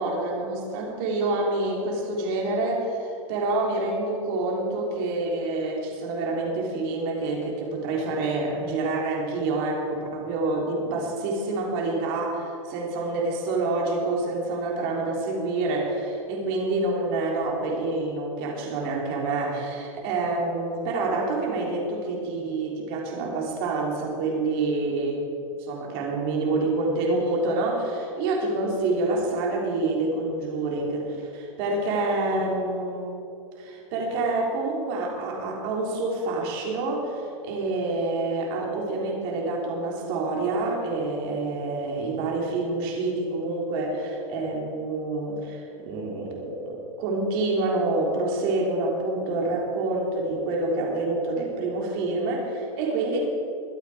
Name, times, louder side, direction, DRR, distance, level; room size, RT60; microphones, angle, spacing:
voice 1, 0.0-25.3 25.6-33.1 33.6-53.2, right 2 dB, 40° right, -1 dB, 3.4 m, -27 dB
23.0 x 8.3 x 5.0 m, 2.6 s
supercardioid pair, 165°, 18 cm